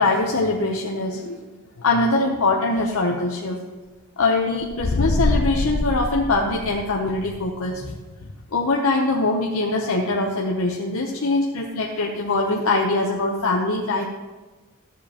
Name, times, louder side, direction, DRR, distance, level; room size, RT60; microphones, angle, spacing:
voice 1, 0.0-1.4 1.8-3.6 4.2-7.9 8.5-14.1, left 2 dB, 75° left, 0 dB, 0.8 m, -22 dB
sound 1, 4.6-7.1, left 2 dB, 45° left, 0.4 m, -24 dB
13.5 x 7.4 x 2.9 m, 1.3 s
head